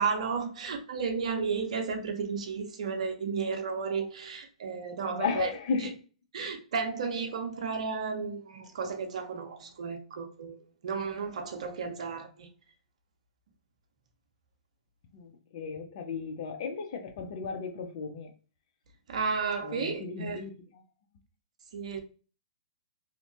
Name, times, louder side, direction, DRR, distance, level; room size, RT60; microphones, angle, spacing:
voice 1, 0.0-5.5 6.3-10.6 10.8-12.5 19.1-20.4 21.7-22.0, right 5 dB, 65° right, 0.6 m, -33 dB
voice 2, 5.0-5.9 15.1-18.3 19.6-20.8, left 5 dB, 55° left, 0.6 m, -35 dB
2.8 x 2.1 x 2.5 m
hypercardioid pair, 120°, 4 cm